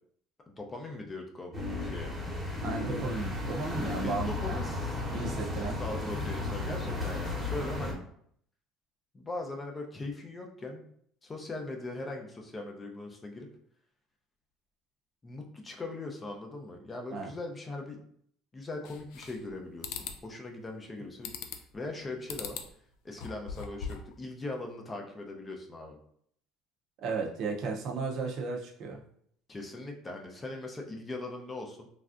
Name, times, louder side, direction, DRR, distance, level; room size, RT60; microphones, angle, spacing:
voice 1, 0.5-2.1 4.0-5.0 5.8-8.0 9.1-10.8 11.2-13.5 15.2-18.0 18.5-21.3 21.7-22.6 23.0-26.0 29.5-31.9, left 2 dB, 20° left, 2 dB, 0.5 m, -40 dB
sound 1, 1.5-7.9, left 2 dB, 15° right, 1.0 m, -34 dB
voice 2, 2.6-4.6 5.1-5.8 17.1-17.3 27.0-29.0, right 4 dB, 55° right, 0 dB, 0.5 m, -34 dB
sound 2, 18.8-19.5 19.8-20.2 21.2-21.7 22.3-22.7 23.1-24.1, left 7 dB, 75° left, 0.3 m, -39 dB
3.2 x 2.5 x 2.5 m, 0.65 s
cardioid pair, 125°, 0 cm